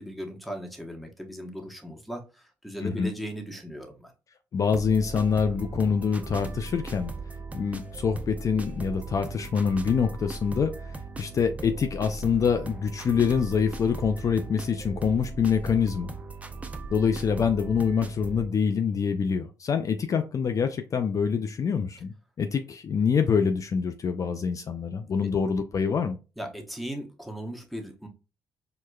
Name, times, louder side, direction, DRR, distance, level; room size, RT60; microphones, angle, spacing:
voice 1, 0.0-4.1 25.2-25.3 26.4-28.1, equal, ahead, 2 dB, 1.0 m, -37 dB
voice 2, 4.5-7.1 7.5-10.7 11.2-16.1 16.9-26.2, left 6 dB, 45° left, 7 dB, 0.4 m, -25 dB
sound 1, 4.7-18.4, right 3 dB, 15° right, 0.6 m, -38 dB
4.7 x 2.1 x 2.3 m, 0.31 s
supercardioid pair, 60°, 8 cm